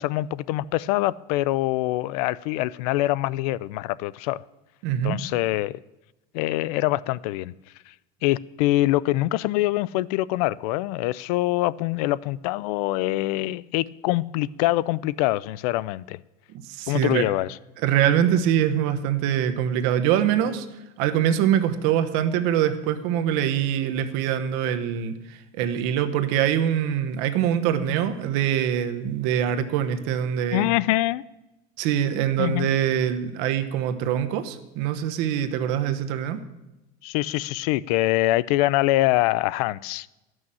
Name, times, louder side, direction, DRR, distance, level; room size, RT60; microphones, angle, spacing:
voice 1, 0.0-4.4 5.0-5.7 6.3-7.5 7.9-8.0 8.2-16.2 16.9-17.5 30.5-31.2 32.4-32.7 37.0-40.1, left 17 dB, 80° left, 21 dB, 0.4 m, -24 dB
voice 2, 4.8-5.2 16.5-17.2 17.8-20.7 21.0-30.7 31.8-36.4, right 10 dB, 60° right, 9 dB, 1.0 m, -24 dB
12.5 x 6.3 x 7.5 m, 0.99 s
cardioid pair, 170°, 19 cm